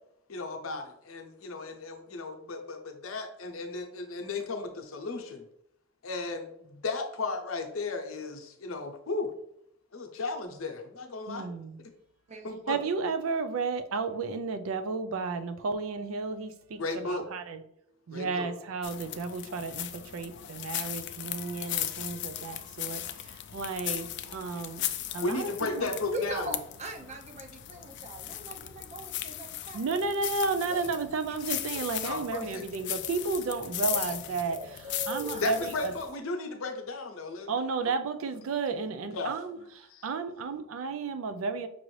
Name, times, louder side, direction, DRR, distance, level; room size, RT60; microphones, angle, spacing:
voice 1, 0.3-5.4 6.0-9.3 9.9-11.5 12.4-12.8 16.8-17.2 18.1-18.5 25.2-26.5 32.0-32.6 35.4-37.5 37.8-37.9 39.1-39.3 39.9-40.1, left 3 dB, 85° left, 4 dB, 0.7 m, -35 dB
voice 2, 11.3-11.8 12.7-17.6 18.1-24.9 25.1-25.9 29.7-34.6 35.1-35.9 37.5-41.7, right 4 dB, 80° right, 10 dB, 0.4 m, -33 dB
sound 1, 18.8-36.1, left 12 dB, 60° left, 0.4 m, -37 dB
voice 3, 26.1-29.9 30.7-30.9 31.7-31.8 32.1-32.2 32.9-33.1 33.9-34.1 34.5-35.5, right 1 dB, 35° right, 3 dB, 0.6 m, -40 dB
6.0 x 2.5 x 3.1 m, 0.76 s
head